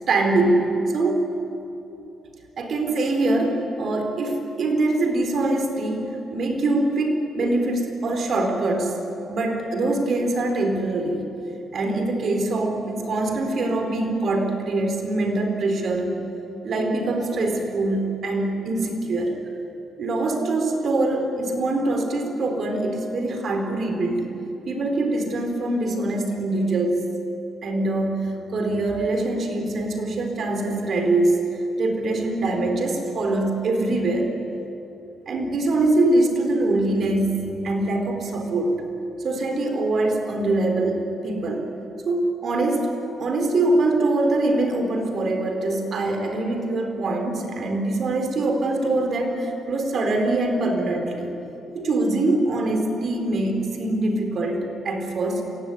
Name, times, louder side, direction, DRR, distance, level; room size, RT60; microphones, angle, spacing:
voice 1, 0.1-1.3 2.6-9.0 9.3-11.3 11.7-16.2 16.6-19.4 20.0-24.4 24.7-27.1 27.6-34.4 35.3-38.9 39.2-41.7 42.0-42.9 43.2-51.3 51.7-55.4, right 2 dB, 55° right, 4 dB, 4.4 m, -23 dB
27.0 x 16.0 x 9.8 m, 2.9 s
cardioid pair, 90°, 0 cm